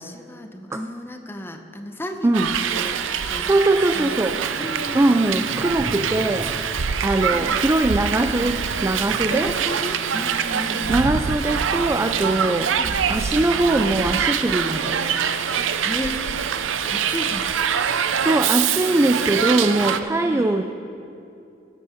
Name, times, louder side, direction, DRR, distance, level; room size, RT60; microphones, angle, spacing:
voice 1, 0.0-3.0 3.3-3.5 3.9-5.5 7.3-7.7 9.3-11.1 12.7-13.0 15.8-16.2 16.9-17.5 20.2-20.5, left 1 dB, 10° left, 6 dB, 0.7 m, -34 dB
Hiss, 2.3-20.0, right 7 dB, 85° right, 0.6 m, -24 dB
voice 2, 3.4-4.4 4.9-6.6 7.0-9.5 10.9-12.7 13.1-15.0 18.2-20.6, right 2 dB, 15° right, 6 dB, 0.3 m, -21 dB
Thunder / Rain, 3.8-13.1 13.4-14.2 14.8-15.1 15.4-16.2 16.8-16.9, equal, 65° left, 2.3 m, -42 dB
15.5 x 8.3 x 5.1 m, 2.7 s
head